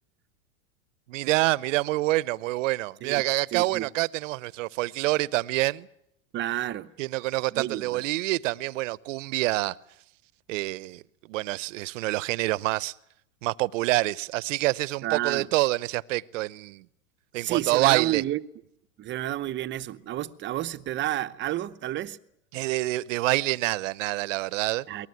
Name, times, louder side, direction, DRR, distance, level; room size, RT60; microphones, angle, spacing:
voice 1, 1.1-5.9 7.0-9.8 10.5-11.0 11.3-13.0 13.4-16.9 17.3-18.2 22.5-24.8, right 19 dB, 65° right, 0.9 m, -26 dB
voice 2, 3.5-3.9 6.3-6.9 7.5-8.0 15.0-15.5 17.4-18.4 19.0-22.2 24.9-25.1, right 13 dB, 25° right, 0.8 m, -30 dB
23.0 x 19.5 x 9.4 m
hypercardioid pair, 125°, 41 cm